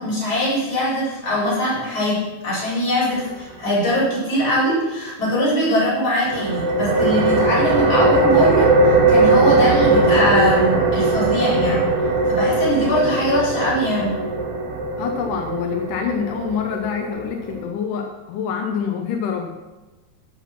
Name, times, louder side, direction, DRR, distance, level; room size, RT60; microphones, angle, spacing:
voice 1, 0.0-11.9 12.3-14.2, left 1 dB, 30° left, -7 dB, 4.9 m, -22 dB
sound 1, 6.3-17.6, right 3 dB, 65° right, 2.6 m, -19 dB
voice 2, 15.0-19.5, left 7 dB, 85° left, 3 dB, 2.5 m, -26 dB
14.0 x 6.0 x 5.9 m, 1.2 s
omnidirectional pair, 3.6 m